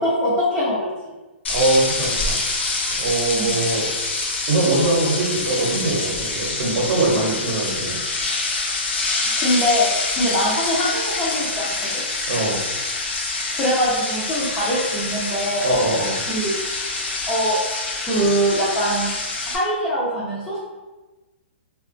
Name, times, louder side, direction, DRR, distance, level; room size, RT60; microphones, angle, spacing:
voice 1, 0.0-0.9 3.3-3.6 9.4-12.0 13.5-15.7 16.3-16.5 17.3-17.6 18.1-19.1 19.5-20.6, equal, 10° left, -10 dB, 0.4 m, -22 dB
sound 1, 1.4-19.6, left 3 dB, 65° left, 0.5 m, -26 dB
voice 2, 1.5-2.4 3.0-3.9 4.5-8.0 12.3-12.6 15.6-16.2, right 2 dB, 55° right, -4 dB, 0.7 m, -22 dB
2.8 x 2.2 x 2.5 m, 1.2 s
hypercardioid pair, 170°, 7 cm